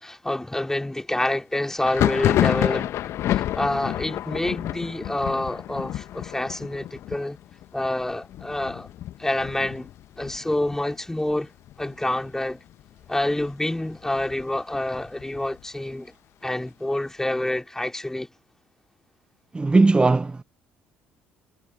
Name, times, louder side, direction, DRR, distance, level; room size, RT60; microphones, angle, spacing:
voice 1, 0.0-2.9 3.3-7.4 7.7-8.9 9.2-9.9 10.2-11.5 11.8-12.6 13.1-16.1 16.4-18.3, left 1 dB, 10° left, 2.9 m, -27 dB
Thunder, 1.8-11.3 11.6-12.3 12.5-13.5 13.9-15.6, left 13 dB, 55° left, 1.5 m, -29 dB
voice 2, 19.5-20.4, right 3 dB, 20° right, 0.9 m, -18 dB
figure-of-eight pair, 50°, 5 cm